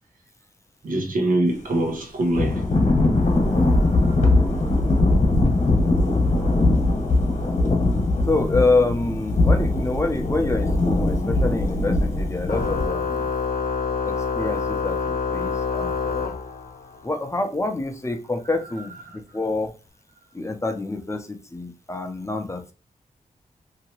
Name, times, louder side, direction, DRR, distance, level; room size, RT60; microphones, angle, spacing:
voice 1, 0.8-2.6 3.8-4.2 19.1-19.2, right 1 dB, 70° right, 0.9 m, -24 dB
Thunder / Rain, 2.3-12.9, left 2 dB, 55° left, 1.1 m, -20 dB
voice 2, 3.5-3.9 8.3-13.3 14.1-16.4 17.0-19.7 20.3-22.7, left 2 dB, 20° left, 0.6 m, -27 dB
Organ, 12.5-17.0, left 5 dB, 75° left, 0.5 m, -26 dB
2.8 x 2.8 x 2.9 m
wide cardioid pair, 95°, 15 cm